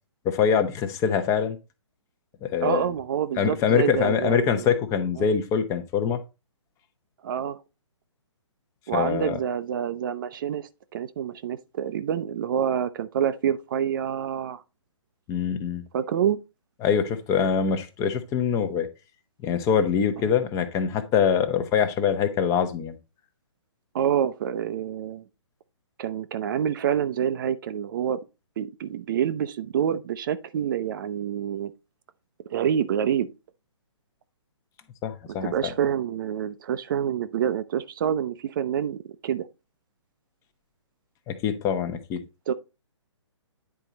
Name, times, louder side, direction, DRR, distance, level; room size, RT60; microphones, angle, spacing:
voice 1, 0.2-1.6 2.4-2.8 3.4-6.2 8.9-9.4 15.3-15.8 16.8-18.9 19.4-23.0 35.0-35.5 41.3-42.2, left 7 dB, 20° left, 0.9 m, -24 dB
voice 2, 2.6-4.7 5.2-5.3 7.2-7.6 8.9-14.6 15.9-16.4 20.3-20.4 23.9-25.2 26.0-28.2 28.6-31.7 32.5-33.3 35.4-39.5 42.5-42.6, right 9 dB, 45° right, 0.6 m, -27 dB
9.9 x 4.5 x 4.0 m
hypercardioid pair, 140°, 16 cm